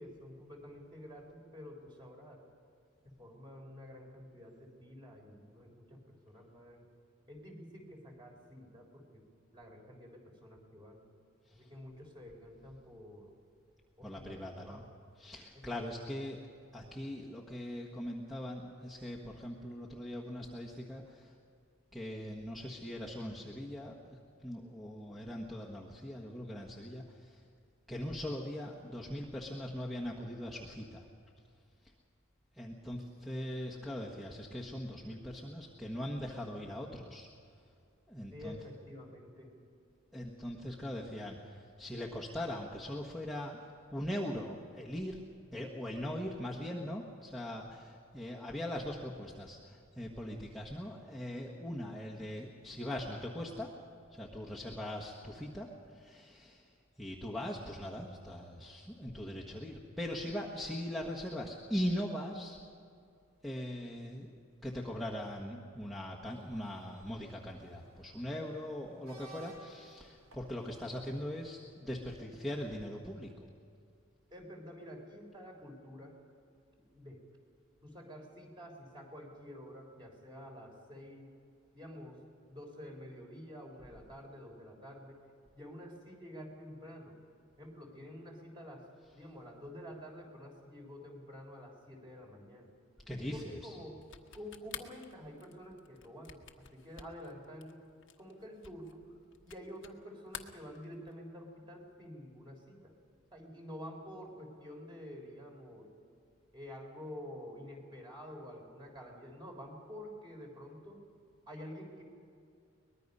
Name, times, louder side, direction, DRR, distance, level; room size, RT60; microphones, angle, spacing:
voice 1, 0.0-2.4 3.0-6.9 7.3-9.3 9.5-11.0 11.5-13.3 14.0-14.9 15.7-15.9 38.3-39.5 74.3-76.2 76.9-77.2 77.8-81.3 81.7-85.2 85.5-87.2 87.6-88.9 89.1-92.7 93.3-94.0 94.3-97.8 98.2-99.0 99.4-102.9 103.3-105.9 106.5-111.0 111.5-112.0, equal, 20° right, 1 dB, 3.8 m, -49 dB
voice 2, 14.0-14.8 15.2-16.5 16.7-21.3 21.9-27.4 27.9-31.1 32.5-37.3 38.1-38.6 40.1-43.6 43.9-45.2 45.5-53.8 54.1-56.7 57.0-62.6 63.4-64.4 64.6-73.5 93.1-93.7, equal, ahead, -5 dB, 1.4 m, -41 dB
sound 1, 66.2-71.6, right 3 dB, 80° right, 3.1 m, -58 dB
sound 2, 94.0-100.0 100.3-101.3, left 9 dB, 60° left, 1.2 m, -49 dB
23.5 x 20.0 x 5.5 m, 2.4 s
head